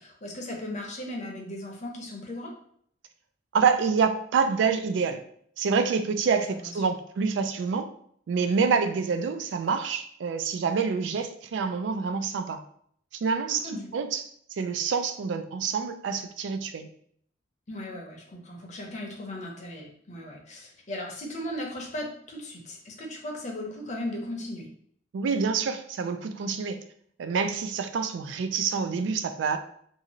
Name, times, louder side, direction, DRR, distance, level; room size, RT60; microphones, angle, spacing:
voice 1, 0.0-2.5 6.3-6.4 13.5-13.9 17.7-24.7, left 1 dB, 40° left, 0 dB, 0.7 m, -37 dB
voice 2, 3.5-5.2 5.6-7.9 8.3-12.6 13.2-14.2 14.6-16.9 25.1-26.8 27.2-29.6, right 5 dB, 75° right, 8 dB, 0.3 m, -27 dB
2.6 x 2.4 x 2.9 m, 0.65 s
head